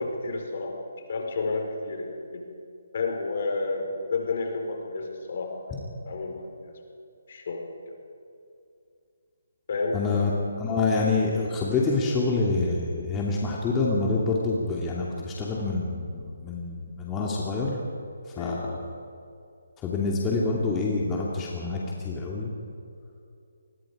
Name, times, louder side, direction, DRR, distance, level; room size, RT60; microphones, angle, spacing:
voice 1, 0.0-2.4 2.9-5.7 6.1-6.7 7.3-7.8 9.7-10.4 18.4-18.6, left 3 dB, 50° left, 2 dB, 4.6 m, -31 dB
voice 2, 9.9-10.3 10.6-17.8 18.4-18.9 19.8-22.5, left 3 dB, 15° left, -3 dB, 2.5 m, -27 dB
26.0 x 21.0 x 5.0 m, 2.5 s
figure-of-eight pair, 150°, 0 cm